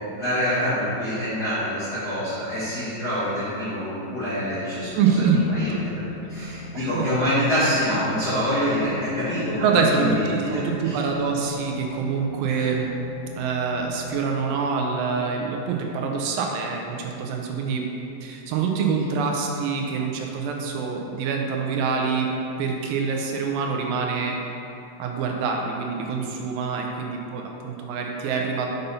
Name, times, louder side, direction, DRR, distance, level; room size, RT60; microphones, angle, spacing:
voice 1, 0.1-5.1 5.5-5.7 6.3-11.0 12.5-12.7, equal, 60° left, -12 dB, 1.0 m, -26 dB
sound 1, 4.5-16.0, left 2 dB, 80° left, 2.0 m, -40 dB
voice 2, 4.9-5.4 6.7-7.1 9.6-12.9 13.4-17.8 18.2-22.3 22.6-24.4 25.0-28.7, right 5 dB, 80° right, 1 dB, 2.3 m, -25 dB
6.7 x 5.5 x 4.0 m, 2.8 s
omnidirectional pair, 4.1 m